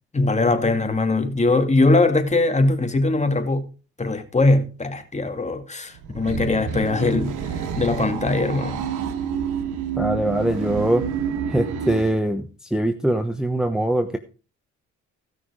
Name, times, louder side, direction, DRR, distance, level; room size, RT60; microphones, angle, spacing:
voice 1, 0.1-3.6 4.0-8.8, left 2 dB, 25° left, 2.2 m, -21 dB
sound 1, 5.9-12.2, right 7 dB, 85° right, 1.6 m, -29 dB
voice 2, 10.0-11.0 11.5-14.2, right 1 dB, ahead, 1.1 m, -22 dB
16.0 x 6.0 x 4.9 m
cardioid pair, 90°, 30 cm